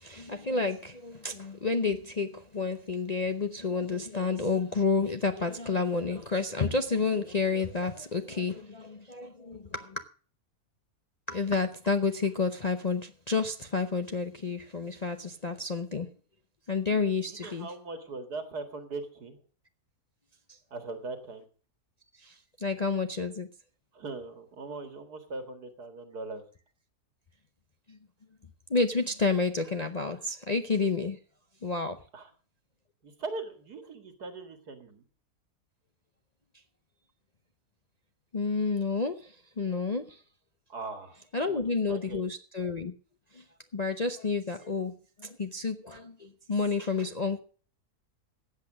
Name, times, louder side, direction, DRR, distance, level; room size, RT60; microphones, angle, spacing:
voice 1, 0.0-10.0 11.3-16.1 16.7-17.7 22.2-22.3 22.6-23.5 27.9-28.0 28.7-31.2 31.6-32.0 38.3-40.2 41.3-42.9 43.3-43.4 43.7-47.4, left 4 dB, 35° left, 6 dB, 0.7 m, -30 dB
voice 2, 17.3-19.4 20.7-21.4 23.9-26.4 32.1-32.3 33.0-35.0 40.7-41.6 41.9-42.2, right 3 dB, 75° right, 7 dB, 2.5 m, -40 dB
14.5 x 8.3 x 6.2 m, 0.42 s
omnidirectional pair, 1.7 m